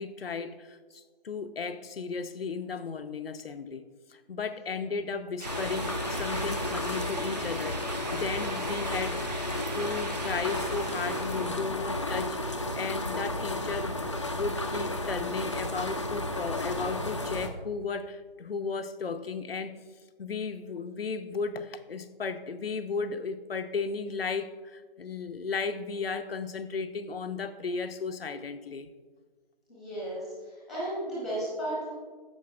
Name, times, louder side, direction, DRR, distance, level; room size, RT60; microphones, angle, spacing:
voice 1, 0.0-9.2 9.7-14.0 14.3-19.8 20.2-28.9, left 4 dB, 85° left, 0.7 m, -35 dB
sound 1, 5.4-17.5, left 1 dB, 30° left, 0.4 m, -32 dB
sound 2, 5.4-11.7, right 3 dB, 45° right, 1.0 m, -41 dB
voice 2, 29.7-31.9, right 1 dB, ahead, 0.9 m, -34 dB
13.5 x 5.2 x 2.5 m
figure-of-eight pair, 165°, 29 cm